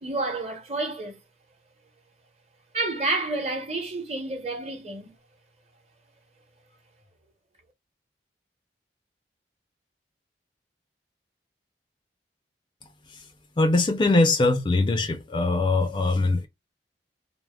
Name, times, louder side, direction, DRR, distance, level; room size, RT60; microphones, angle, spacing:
voice 1, 0.0-1.2 2.7-5.1, right 2 dB, 35° right, 0.9 m, -29 dB
voice 2, 13.6-16.5, left 2 dB, 25° left, 0.4 m, -22 dB
3.3 x 2.0 x 2.2 m
head